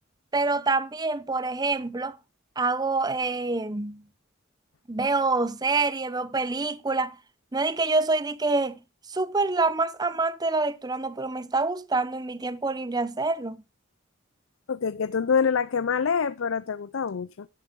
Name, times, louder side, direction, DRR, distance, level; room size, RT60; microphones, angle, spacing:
voice 1, 0.3-2.2 2.6-4.0 4.9-7.1 7.5-8.8 9.1-13.6, right 3 dB, 20° right, 0.7 m, -26 dB
voice 2, 14.7-17.5, left 6 dB, 80° left, 0.5 m, -26 dB
11.0 x 11.0 x 3.6 m
head